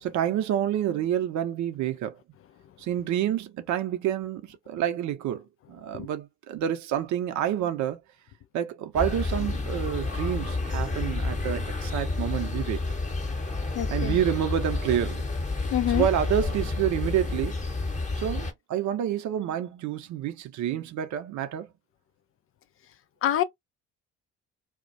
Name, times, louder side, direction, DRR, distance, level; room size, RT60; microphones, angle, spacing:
voice 1, 0.0-2.2 2.8-8.0 8.5-12.8 13.9-15.3 15.9-17.6 18.2-21.7, right 10 dB, 55° right, 0.7 m, -28 dB
sound 1, 8.9-18.5, left 3 dB, 20° left, 1.0 m, -30 dB
voice 2, 13.7-14.2 15.7-16.1 23.2-23.4, left 12 dB, 40° left, 0.4 m, -26 dB
2.3 x 2.1 x 2.7 m
hypercardioid pair, 55°, 35 cm